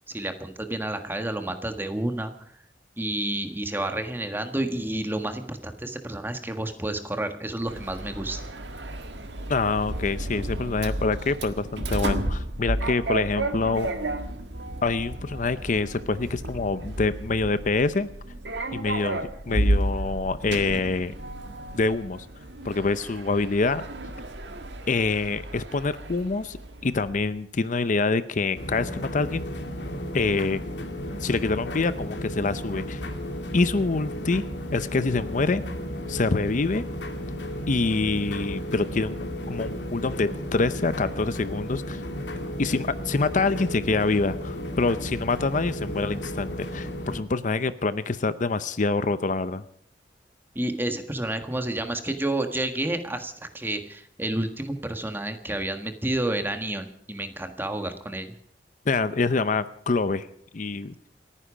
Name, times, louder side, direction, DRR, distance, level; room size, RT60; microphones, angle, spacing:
voice 1, 0.1-2.3 3.0-8.4 50.5-58.3, right 1 dB, 10° right, 7 dB, 1.5 m, -30 dB
Sliding door, 7.7-27.3, right 1 dB, 90° right, 1.7 m, -32 dB
voice 2, 9.5-13.9 14.8-18.1 18.7-21.1 21.7-22.3 22.6-23.8 24.9-26.6 26.8-29.5 30.1-30.6 31.2-33.0 33.5-34.4 34.7-35.6 36.1-36.8 37.7-39.1 39.5-42.0 42.6-49.6 58.9-60.3 60.5-60.9, left 3 dB, 45° left, 14 dB, 0.6 m, -26 dB
sound 1, 28.5-47.2, equal, 85° left, 2.5 m, -34 dB
28.0 x 10.0 x 5.1 m, 0.66 s
head